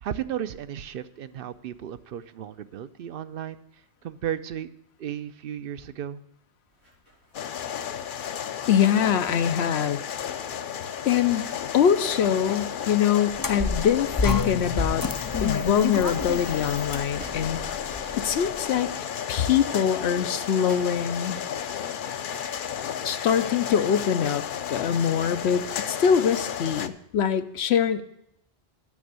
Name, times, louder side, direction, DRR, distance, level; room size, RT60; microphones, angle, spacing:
voice 1, 0.0-3.6 4.0-4.7 5.0-6.2, right 10 dB, 65° right, 14 dB, 0.7 m, -34 dB
sound 1, 6.7-9.4 9.6-9.7 9.9-22.7, right 1 dB, 85° right, 6.1 m, -50 dB
sound 2, 7.3-26.9, left 8 dB, 60° left, 0.7 m, -33 dB
voice 2, 8.7-10.0 11.1-11.5 11.7-15.1 15.4-17.6 18.2-18.9 19.3-21.4 23.0-24.4 24.7-28.0, left 8 dB, 80° left, 10 dB, 0.9 m, -23 dB
sound 3, 13.3-18.6, left 4 dB, 35° left, 0.3 m, -30 dB
9.5 x 6.3 x 8.0 m, 0.78 s
omnidirectional pair, 1.1 m